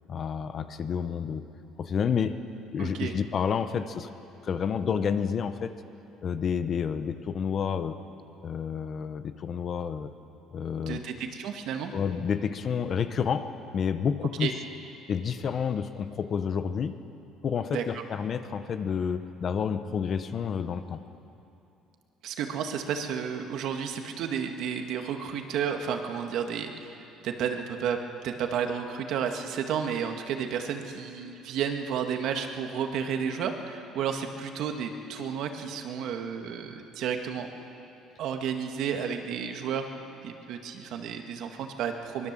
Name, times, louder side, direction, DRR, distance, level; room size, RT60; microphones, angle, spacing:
voice 1, 0.1-1.5 1.8-2.4 2.7-4.1 4.4-5.8 6.2-8.0 8.4-10.1 10.5-11.0 11.9-14.6 15.1-17.0 17.4-21.0, left 7 dB, 35° left, 10 dB, 0.8 m, -29 dB
voice 2, 2.8-3.1 10.9-11.9 14.4-14.5 17.7-17.8 22.2-27.0 27.2-28.0 28.2-37.5 38.2-39.9 40.2-42.3, right 7 dB, 60° right, 5 dB, 1.9 m, -32 dB
23.5 x 21.0 x 7.6 m, 2.8 s
cardioid pair, 155°, 0 cm